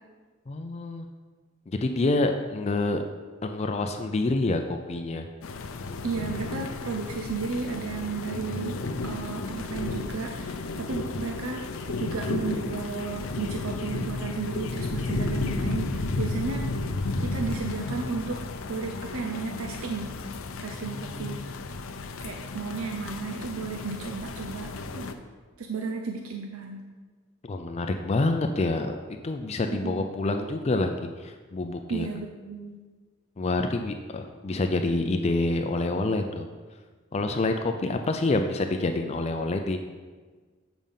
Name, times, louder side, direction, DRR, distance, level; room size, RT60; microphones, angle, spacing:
voice 1, 0.5-1.1 1.7-3.0 3.4-5.2 21.1-21.4 27.4-29.0 29.2-32.1 33.4-36.4 37.1-39.8, left 2 dB, 30° left, 5 dB, 0.4 m, -27 dB
sound 1, 5.4-25.1, left 3 dB, 80° left, 0.6 m, -33 dB
voice 2, 6.0-11.6 12.0-16.8 17.2-18.4 18.7-20.1 20.6-21.6 22.2-25.1 25.6-26.8 29.7-30.1 31.9-32.8, right 4 dB, 85° right, 2 dB, 0.6 m, -33 dB
7.3 x 5.0 x 5.5 m, 1.4 s
head